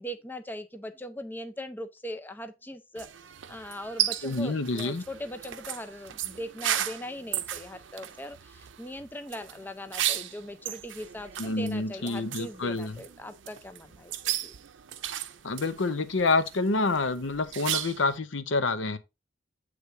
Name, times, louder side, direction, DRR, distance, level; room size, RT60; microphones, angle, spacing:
voice 1, 0.0-3.1 3.5-14.5, equal, 10° left, 0.5 m, -40 dB
sound 1, 3.0-18.2, right 12 dB, 80° right, 0.5 m, -35 dB
voice 2, 4.2-5.0 11.4-13.0 15.4-19.0, left 3 dB, 80° left, 0.8 m, -28 dB
8.3 x 3.3 x 4.5 m
head